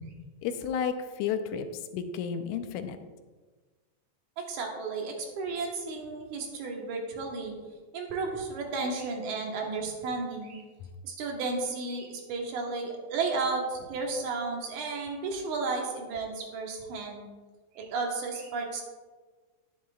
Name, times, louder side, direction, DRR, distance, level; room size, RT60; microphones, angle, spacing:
voice 1, 0.4-1.7 1.9-3.0, left 7 dB, 85° left, 9 dB, 2.0 m, -32 dB
voice 2, 4.4-7.6 7.9-10.6 11.0-17.3 17.7-18.8, right 4 dB, 80° right, 1 dB, 2.7 m, -33 dB
10.0 x 10.0 x 2.4 m, 1.4 s
omnidirectional pair, 3.4 m